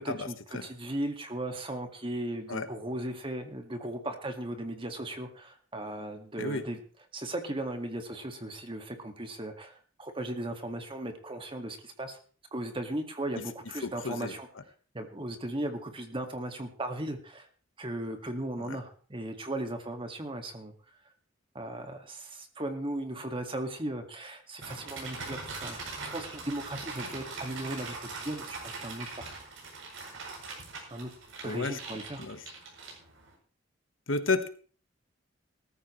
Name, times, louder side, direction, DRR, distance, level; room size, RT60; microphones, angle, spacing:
voice 1, 0.0-6.8 7.1-12.2 12.5-14.5 14.9-17.5 17.8-20.7 21.5-29.3 30.9-31.1 31.4-32.2, right 1 dB, 25° right, 5 dB, 2.1 m, -37 dB
voice 2, 13.8-14.3 18.6-18.8 31.4-32.4 34.1-34.5, left 3 dB, 80° left, 9 dB, 1.4 m, -32 dB
sound 1, 24.6-33.3, right 3 dB, 75° right, 7.7 m, -42 dB
18.5 x 14.0 x 3.2 m, 0.40 s
head